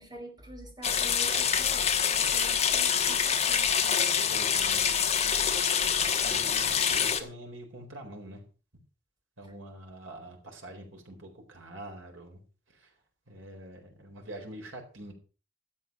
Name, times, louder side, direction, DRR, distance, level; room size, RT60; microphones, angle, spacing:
voice 1, 0.0-4.0, right 1 dB, 20° right, 3 dB, 3.4 m, -46 dB
sound 1, 0.8-7.2, left 7 dB, 35° left, 1.2 m, -26 dB
voice 2, 4.3-5.0 6.0-8.4 9.4-12.4 12.7-12.9 13.3-15.1, right 1 dB, 90° right, 2 dB, 4.4 m, -45 dB
13.0 x 8.0 x 6.1 m, 0.36 s
head